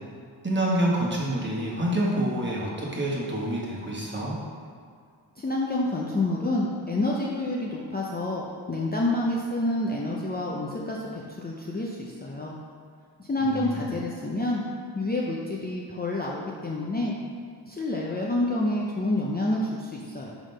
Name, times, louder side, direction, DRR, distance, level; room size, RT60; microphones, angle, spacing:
voice 1, 0.4-4.3 13.4-13.9, right 1 dB, 25° right, -5 dB, 1.3 m, -27 dB
voice 2, 5.4-12.5 13.2-14.6 14.9-17.1 17.7-20.3, left 1 dB, 20° left, -4 dB, 0.5 m, -28 dB
5.0 x 3.9 x 5.3 m, 2.1 s
wide cardioid pair, 105°, 44 cm